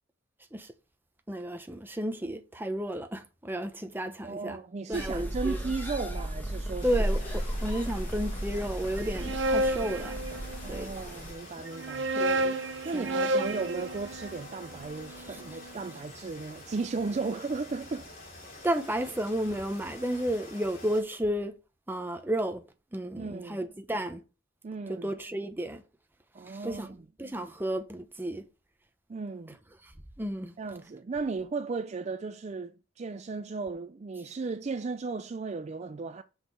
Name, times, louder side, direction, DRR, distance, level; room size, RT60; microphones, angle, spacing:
voice 1, 1.3-4.6 4.9-5.6 6.8-10.2 10.7-10.9 12.1-12.5 12.9-13.8 18.6-21.5 21.9-22.6 22.9-24.2 24.9-25.8 26.5-26.9 27.2-28.4 29.8-29.9 30.2-30.5, right 1 dB, 10° right, 0.8 m, -32 dB
voice 2, 4.1-6.9 10.6-12.1 12.8-18.1 23.1-23.6 24.6-25.1 26.3-27.1 29.1-29.6 30.6-36.2, right 4 dB, 35° right, 0.4 m, -35 dB
sound 1, 4.9-11.3, right 1 dB, 10° left, 1.5 m, -34 dB
sound 2, 6.8-21.0, left 2 dB, 45° left, 3.9 m, -47 dB
sound 3, 9.0-10.9 11.7-15.8, right 1 dB, 70° right, 0.8 m, -31 dB
6.3 x 5.1 x 5.9 m
head